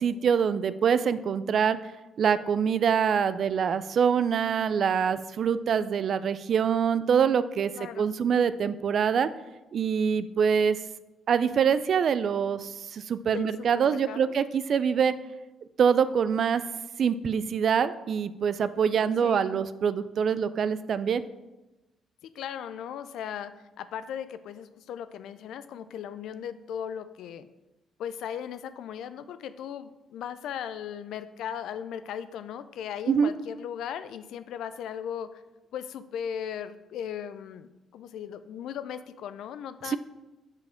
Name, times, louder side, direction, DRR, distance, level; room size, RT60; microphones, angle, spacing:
voice 1, 0.0-1.8 2.2-7.7 8.0-9.3 9.7-10.8 11.3-15.1 15.8-16.6 17.0-21.2 33.1-33.3 39.9-40.0, right 7 dB, 60° right, 14 dB, 0.3 m, -25 dB
voice 2, 7.7-8.2 13.3-14.4 19.2-19.6 22.2-27.5 28.0-35.4 35.7-40.0, left 9 dB, 80° left, 13 dB, 0.4 m, -37 dB
5.6 x 5.0 x 5.0 m, 1.0 s
cardioid pair, 90°, 0 cm